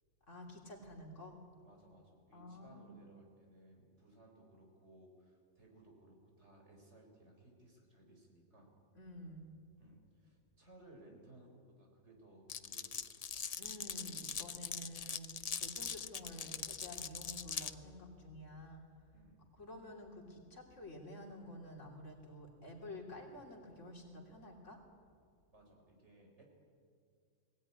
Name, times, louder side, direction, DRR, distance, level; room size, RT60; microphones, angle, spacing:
voice 1, 0.3-1.4 2.3-3.0 8.9-9.5 13.6-18.9 19.6-24.8, left 1 dB, 60° left, 1 dB, 3.4 m, -50 dB
voice 2, 1.6-8.7 9.8-13.5 14.9-15.0 19.1-19.5 25.5-26.4, right 1 dB, 55° right, 1 dB, 4.6 m, -61 dB
Glass, 12.5-17.7, left 6 dB, 45° left, 0.5 m, -42 dB
20.5 x 17.5 x 9.8 m, 2.2 s
omnidirectional pair, 1.4 m